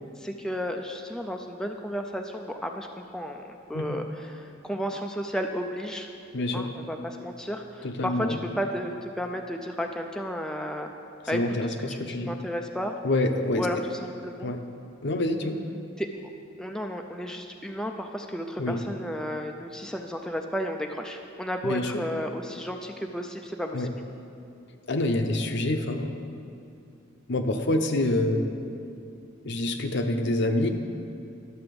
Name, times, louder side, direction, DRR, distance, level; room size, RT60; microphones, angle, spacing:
voice 1, 0.2-2.9 3.1-6.1 6.5-10.9 11.3-11.4 11.7-12.9 13.6-14.5 16.0-16.1 16.6-23.9, equal, 5° left, 3 dB, 0.3 m, -33 dB
voice 2, 6.3-6.7 7.8-8.4 11.3-12.3 13.0-13.7 14.4-14.6 15.0-15.6 18.6-18.8 21.6-22.0 23.7-23.9 24.9-26.1 27.3-28.6 29.4-30.7, left 1 dB, 60° left, 6 dB, 0.7 m, -26 dB
12.0 x 6.8 x 5.2 m, 2.6 s
head